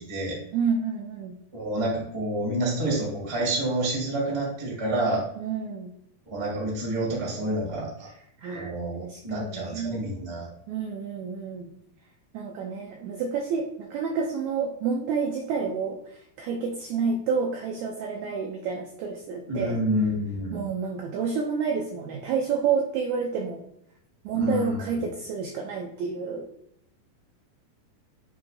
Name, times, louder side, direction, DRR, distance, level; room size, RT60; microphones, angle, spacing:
voice 1, 0.0-0.4 1.5-5.2 6.3-8.1 8.5-10.5 19.5-20.6 24.3-24.8, right 1 dB, 35° right, -4 dB, 0.4 m, -28 dB
voice 2, 0.5-1.4 5.4-5.9 8.4-10.0 10.7-11.7 12.3-19.8 20.5-23.6 24.2-26.5, right 5 dB, 85° right, 1 dB, 1.6 m, -29 dB
7.1 x 2.8 x 2.6 m, 0.74 s
omnidirectional pair, 3.7 m